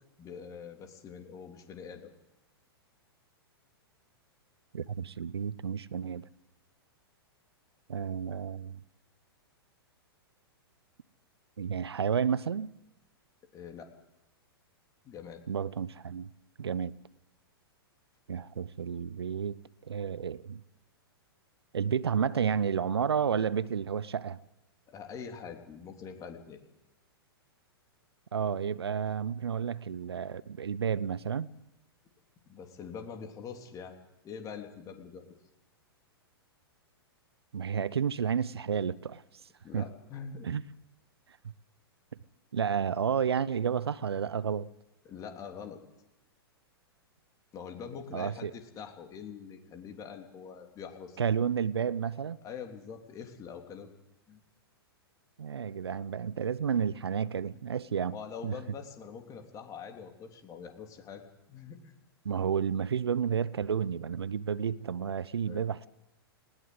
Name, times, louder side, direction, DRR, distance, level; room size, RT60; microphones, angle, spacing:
voice 1, 0.2-2.1 13.5-13.9 15.0-15.4 24.9-26.6 32.5-34.0 34.2-35.2 39.6-40.5 45.0-45.8 47.5-51.2 52.4-53.9 54.3-54.4 57.5-57.6 58.1-61.2 61.5-61.9 65.5-65.6, left 6 dB, 25° left, 3.3 m, -44 dB
voice 2, 4.7-6.2 7.9-8.8 11.6-12.7 15.5-16.3 16.6-16.9 18.3-19.6 19.8-20.6 21.7-24.4 28.3-31.5 37.5-39.2 39.7-39.9 40.4-40.6 42.5-44.7 48.1-48.5 51.2-52.4 55.4-58.1 58.4-58.6 62.2-65.9, right 7 dB, 80° right, 0.7 m, -31 dB
19.5 x 18.0 x 8.1 m
hypercardioid pair, 110°, 13 cm